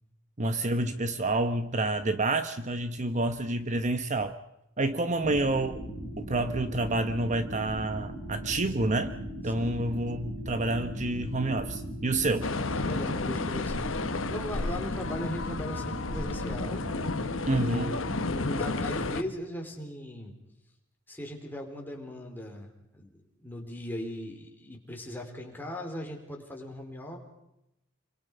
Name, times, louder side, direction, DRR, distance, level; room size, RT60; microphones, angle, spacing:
voice 1, 0.4-4.3 4.8-5.8 6.2-9.2 9.4-12.5 17.5-17.9, right 2 dB, 35° right, 9 dB, 1.1 m, -28 dB
sound 1, 5.2-19.1, equal, 75° right, 3.1 m, -38 dB
sound 2, 12.4-19.2, left 3 dB, 70° left, 1.2 m, -32 dB
voice 2, 12.7-16.8 17.5-20.3 21.1-27.2, left 1 dB, 10° left, 1 dB, 4.3 m, -39 dB
28.5 x 24.5 x 5.5 m, 0.86 s
head